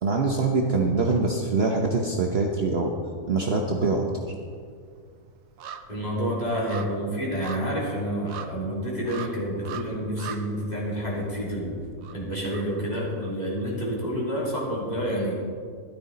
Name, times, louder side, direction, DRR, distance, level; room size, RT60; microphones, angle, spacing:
voice 1, 0.0-2.9 3.3-4.1, right 3 dB, 45° right, 1 dB, 1.0 m, -24 dB
Common Raven - Yellowstone National Park, 2.9-3.4 3.7-13.7 14.0-14.1, right 7 dB, 85° right, 1.3 m, -43 dB
voice 2, 5.9-11.8 12.1-15.3, equal, 25° left, -5 dB, 3.0 m, -29 dB
13.5 x 12.0 x 4.1 m, 2.1 s
omnidirectional pair, 1.6 m